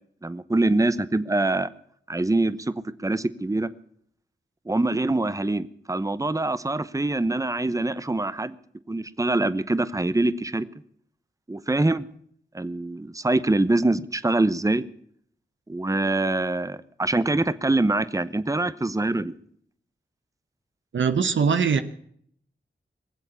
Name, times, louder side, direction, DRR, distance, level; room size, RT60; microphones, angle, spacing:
voice 1, 0.2-1.7 2.1-3.7 4.7-8.5 8.9-10.6 11.5-12.1 12.5-14.8 15.7-19.3, right 2 dB, 15° right, 0.9 m, -24 dB
voice 2, 20.9-21.8, right 6 dB, 85° right, 1.0 m, -21 dB
22.0 x 7.9 x 8.4 m
cardioid pair, 55°, 19 cm